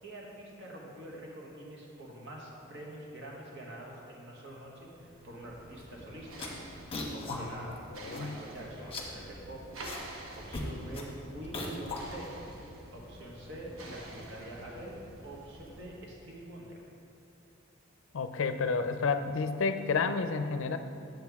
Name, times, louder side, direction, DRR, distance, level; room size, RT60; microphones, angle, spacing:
voice 1, 0.0-6.5 7.1-7.7 8.0-9.6 10.3-12.4 12.9-16.8, right 1 dB, 60° right, -2 dB, 1.6 m, -45 dB
sound 1, 4.6-16.1, right 1 dB, 80° right, 1.1 m, -49 dB
sound 2, 5.8-6.0 6.3-7.4 7.7-7.8 8.0-8.5 8.8-10.1 10.3-12.5, left 2 dB, 25° left, 1.1 m, -39 dB
voice 2, 7.3-7.8 8.0-8.4 18.1-20.8, left 4 dB, 65° left, 9 dB, 0.5 m, -31 dB
8.8 x 7.6 x 3.6 m, 2.9 s
head